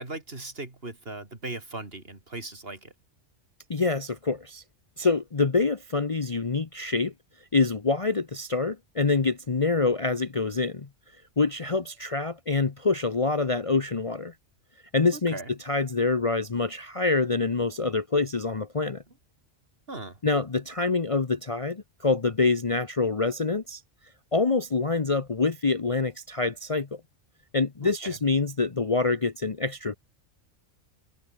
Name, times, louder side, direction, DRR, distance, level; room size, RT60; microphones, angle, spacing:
voice 1, 0.0-2.9 15.1-15.5 19.9-20.2 27.8-28.2, right 2 dB, 50° right, 3.9 m, -38 dB
voice 2, 3.7-4.6 5.0-7.1 7.5-10.9 11.4-14.3 14.9-15.4 15.6-19.0 20.2-23.8 24.3-27.0 27.5-30.0, left 3 dB, 30° left, 0.9 m, -26 dB
omnidirectional pair, 1.3 m